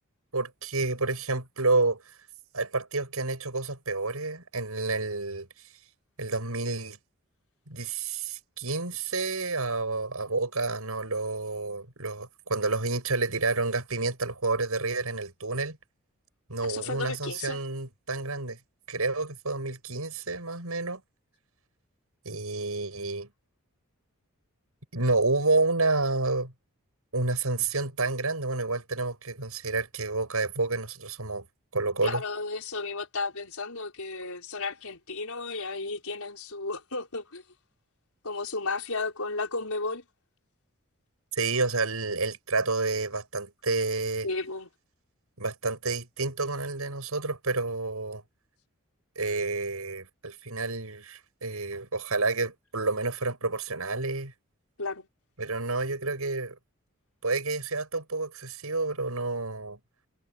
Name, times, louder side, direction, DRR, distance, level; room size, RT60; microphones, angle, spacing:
voice 1, 0.3-2.0 2.5-5.5 6.2-7.0 7.7-15.8 16.5-18.6 18.9-21.0 22.3-23.3 24.9-26.5 27.1-31.5 31.7-32.2 41.3-44.3 45.4-48.2 49.2-54.3 55.4-56.6 57.2-59.8, right 3 dB, 80° right, 6.9 m, -29 dB
voice 2, 16.6-17.6 32.0-37.4 38.2-40.0 44.2-44.7 54.8-55.1, left 3 dB, 75° left, 5.3 m, -33 dB
head